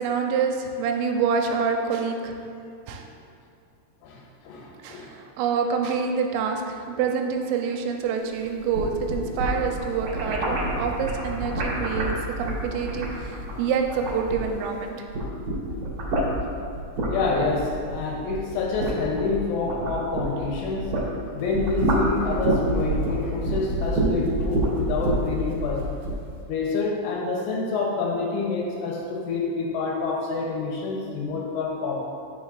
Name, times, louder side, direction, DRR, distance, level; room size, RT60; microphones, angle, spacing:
voice 1, 0.0-2.4 2.9-3.1 4.8-15.1, right 6 dB, 85° right, 3 dB, 3.2 m, -27 dB
voice 2, 4.0-5.1 13.5-13.6 15.6-15.7 17.1-20.9 21.3-25.8 26.5-32.1, left 4 dB, 80° left, -1 dB, 3.2 m, -27 dB
sound 1, 8.5-14.7 15.0-21.1 21.4-26.2, right 1 dB, 50° right, 2.3 m, -27 dB
10.0 x 7.0 x 2.5 m, 2.5 s
omnidirectional pair, 5.8 m